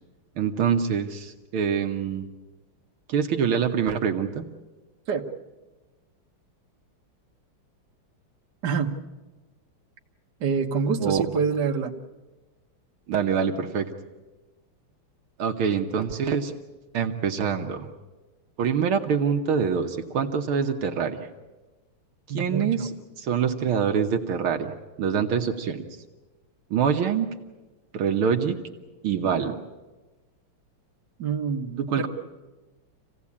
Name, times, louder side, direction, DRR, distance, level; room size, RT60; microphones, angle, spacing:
voice 1, 0.4-2.3 3.1-4.5 11.0-11.2 13.1-13.9 15.4-16.5 16.9-17.9 18.6-21.3 22.3-22.9 23.2-25.9 26.7-27.3 27.9-28.6 29.0-29.5 31.7-32.1, right 7 dB, 75° right, 5 dB, 2.0 m, -25 dB
voice 2, 8.6-9.0 10.4-11.9 22.3-22.9 31.2-32.1, right 5 dB, 55° right, 1 dB, 1.8 m, -26 dB
27.0 x 17.0 x 8.5 m, 1.2 s
omnidirectional pair, 2.4 m